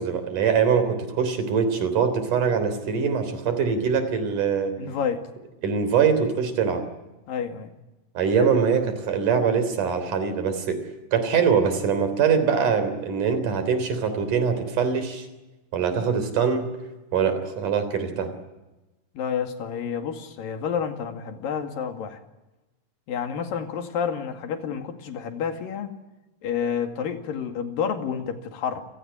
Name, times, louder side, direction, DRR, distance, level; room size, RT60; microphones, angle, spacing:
voice 1, 0.0-4.7 5.6-6.8 8.1-10.8 11.1-15.3 15.7-16.7 17.1-18.3, right 6 dB, 70° right, 10 dB, 4.9 m, -23 dB
voice 2, 4.8-5.2 7.3-7.7 8.4-8.5 19.2-22.2 23.1-25.9 26.4-28.8, left 7 dB, 90° left, 6 dB, 3.9 m, -29 dB
28.5 x 17.5 x 9.0 m, 1.1 s
omnidirectional pair, 3.9 m